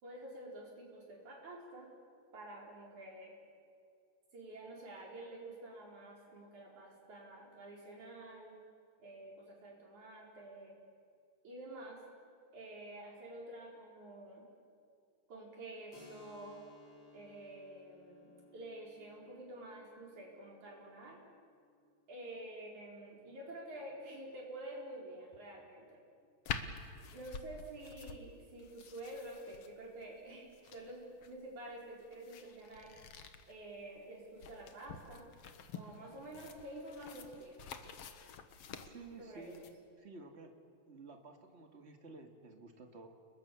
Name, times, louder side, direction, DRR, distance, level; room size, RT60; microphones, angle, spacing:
voice 1, 0.0-1.9 2.3-3.4 4.3-8.6 9.0-10.8 11.4-12.0 12.5-14.5 15.3-16.6 17.1-21.2 22.1-26.0 27.1-32.9 33.5-35.3 35.7-37.7 39.2-39.6, right 1 dB, 65° right, -1 dB, 6.1 m, -49 dB
Keyboard (musical), 15.9-23.3, left 3 dB, 40° left, 4.5 m, -62 dB
sound 1, 26.4-39.7, left 6 dB, 55° left, 2.0 m, -48 dB
voice 2, 38.8-39.7 40.0-40.5 40.9-43.1, right 3 dB, 25° right, 4 dB, 1.8 m, -52 dB
30.0 x 21.5 x 7.1 m, 2.3 s
omnidirectional pair, 3.7 m